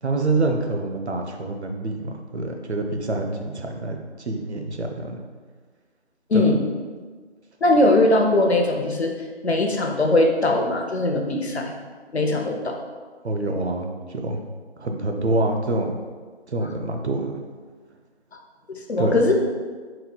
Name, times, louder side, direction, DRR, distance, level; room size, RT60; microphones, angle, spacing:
voice 1, 0.0-5.2 6.3-6.4 13.2-14.4 14.8-16.0 16.5-17.4 19.0-19.1, right 2 dB, 75° right, 3 dB, 0.6 m, -26 dB
voice 2, 6.3-6.7 7.6-9.1 9.4-11.7 12.1-12.8 18.7-19.4, left 2 dB, 70° left, 2 dB, 0.7 m, -20 dB
4.2 x 3.9 x 2.2 m, 1.5 s
figure-of-eight pair, 175°, 33 cm